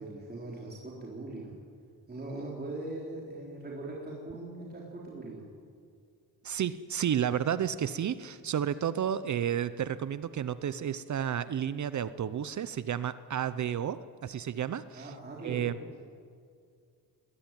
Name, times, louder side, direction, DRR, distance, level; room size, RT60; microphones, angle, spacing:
voice 1, 0.0-1.5 2.1-5.4 14.9-15.7, right 2 dB, 25° right, -4 dB, 4.1 m, -40 dB
voice 2, 6.4-15.1 15.4-15.7, right 9 dB, 45° right, 14 dB, 0.7 m, -31 dB
20.5 x 20.0 x 9.2 m, 2.2 s
cardioid pair, 130°, 40 cm